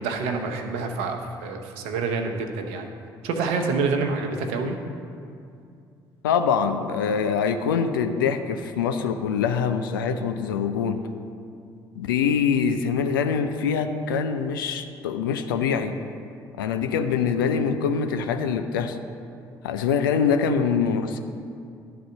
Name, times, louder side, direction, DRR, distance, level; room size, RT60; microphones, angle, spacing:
voice 1, 0.0-2.9 3.2-4.8, right 4 dB, 65° right, 4 dB, 0.8 m, -27 dB
voice 2, 6.2-11.0 12.0-16.0 16.6-19.0 19.6-21.2, left 6 dB, 75° left, 8 dB, 0.4 m, -24 dB
11.0 x 3.9 x 5.6 m, 2.5 s
figure-of-eight pair, 50°, 11 cm